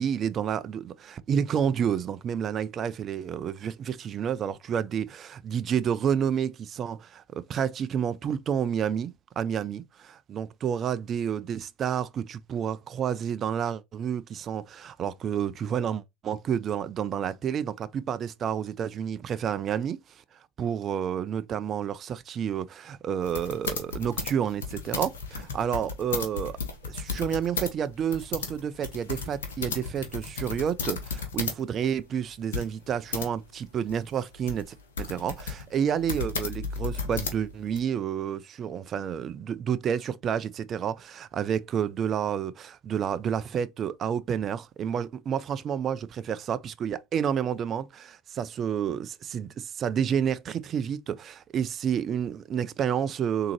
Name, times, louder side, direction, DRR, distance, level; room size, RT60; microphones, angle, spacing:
voice 1, 0.0-20.0 20.6-26.6 26.8-53.5, right 8 dB, 40° right, 0.4 m, -30 dB
sound 1, 23.2-27.7 28.0-31.6 31.9-32.0 32.5-33.3 33.9-37.8, left 4 dB, 75° left, 1.0 m, -34 dB
3.7 x 2.8 x 2.9 m
hypercardioid pair, 80°, 0 cm